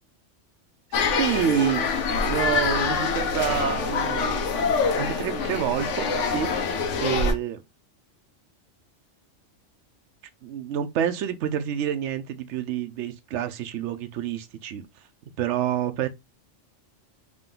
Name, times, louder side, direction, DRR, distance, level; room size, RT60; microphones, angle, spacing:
sound 1, 0.9-7.3, left 5 dB, 75° left, 1.1 m, -25 dB
voice 1, 0.9-1.9 2.2-6.6 7.0-7.6 10.4-14.8 15.4-16.1, right 10 dB, 75° right, 0.9 m, -28 dB
3.8 x 2.4 x 3.7 m
omnidirectional pair, 1.3 m